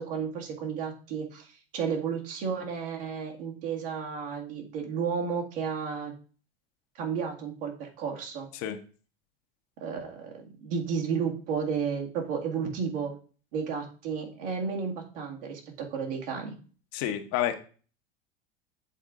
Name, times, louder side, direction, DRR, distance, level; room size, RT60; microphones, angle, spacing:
voice 1, 0.0-6.1 7.0-8.5 9.8-13.1 13.5-16.6, right 6 dB, 70° right, 1 dB, 1.9 m, -32 dB
voice 2, 16.9-17.5, left 11 dB, 55° left, 7 dB, 1.0 m, -29 dB
8.0 x 3.6 x 3.7 m, 0.39 s
hypercardioid pair, 90°, 29 cm